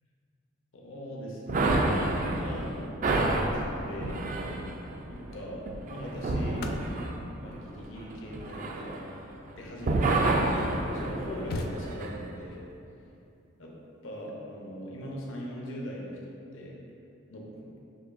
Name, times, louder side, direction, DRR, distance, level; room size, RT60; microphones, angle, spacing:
voice 1, 0.7-4.3 5.1-6.7 7.3-9.0 9.6-12.6 13.6-13.7 14.0-16.8 17.3-17.7, equal, 75° left, -3 dB, 0.7 m, -40 dB
Sampler Industry Crashes, 1.5-9.5 9.8-12.1, right 2 dB, 40° right, 0.3 m, -29 dB
sound 1, 4.5-4.8 5.7-10.3 10.9-11.0 11.1-12.4 14.1-14.3, left 2 dB, 50° left, 0.3 m, -43 dB
6.6 x 2.8 x 2.5 m, 2.7 s
head